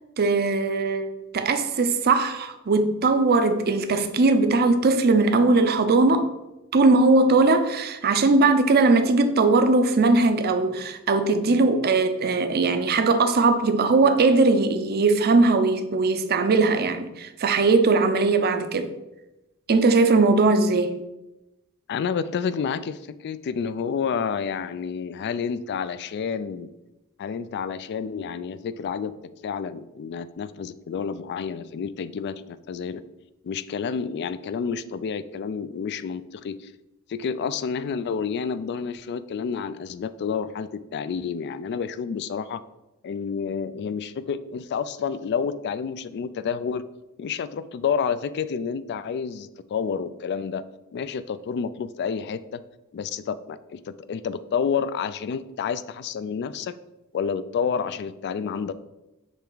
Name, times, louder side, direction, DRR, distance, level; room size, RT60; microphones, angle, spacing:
voice 1, 0.2-6.3 6.7-18.9 19.7-21.0, right 3 dB, 45° right, 0.5 m, -20 dB
voice 2, 21.9-26.7 27.2-29.1 29.4-33.0 33.4-36.7 37.1-42.6 43.0-46.8 47.2-50.6 50.9-52.6 52.9-56.8 57.1-58.7, left 6 dB, 50° left, 0.3 m, -29 dB
7.2 x 3.4 x 3.9 m
head